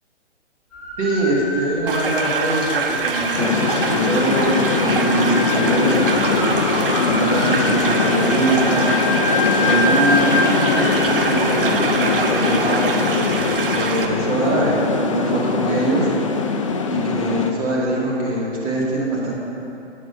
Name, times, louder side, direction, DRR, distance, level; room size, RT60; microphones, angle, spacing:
sound 1, 0.7-13.8, left 2 dB, ahead, 1.8 m, -28 dB
voice 1, 1.0-6.6 7.0-8.9 9.6-16.1 16.8-19.4, right 1 dB, 35° right, -5 dB, 2.3 m, -23 dB
sound 2, 1.9-14.1, right 4 dB, 50° right, 0.7 m, -25 dB
sound 3, 3.4-17.5, left 4 dB, 30° left, 0.4 m, -22 dB
9.2 x 6.2 x 5.3 m, 2.9 s
figure-of-eight pair, 130°, 34 cm